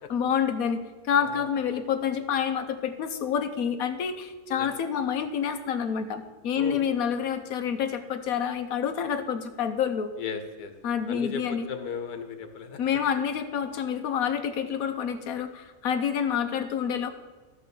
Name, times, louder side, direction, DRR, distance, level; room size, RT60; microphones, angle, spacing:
voice 1, 0.1-10.1 10.8-11.7 12.8-17.1, left 7 dB, 70° left, 8 dB, 1.2 m, -28 dB
voice 2, 6.6-6.9 10.2-10.7 11.1-12.8, left 6 dB, 90° left, 7 dB, 1.5 m, -36 dB
13.5 x 4.7 x 6.9 m, 1.3 s
omnidirectional pair, 1.6 m